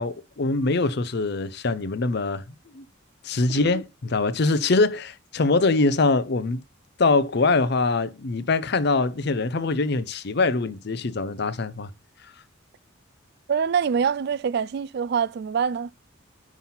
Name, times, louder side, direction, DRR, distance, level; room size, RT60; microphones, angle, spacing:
voice 1, 0.0-2.4 2.7-2.8 3.2-6.6 7.0-11.9, left 3 dB, 55° left, 0.6 m, -23 dB
voice 2, 13.5-15.9, right 7 dB, 50° right, 0.3 m, -25 dB
6.0 x 5.7 x 5.6 m
head